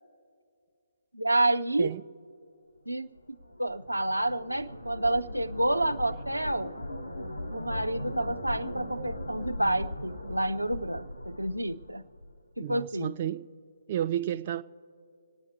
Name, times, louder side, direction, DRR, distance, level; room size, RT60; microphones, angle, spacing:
voice 1, 1.1-1.9 2.9-3.1 3.6-6.7 7.5-12.0 12.6-13.1, right 1 dB, 85° right, 9 dB, 0.6 m, -29 dB
sound 1, 3.2-12.4, left 1 dB, 90° left, 1.4 m, -39 dB
voice 2, 12.6-13.5 13.9-14.6, right 11 dB, 35° right, 10 dB, 0.4 m, -31 dB
26.5 x 9.1 x 4.3 m, 2.4 s
figure-of-eight pair, 135°, 0 cm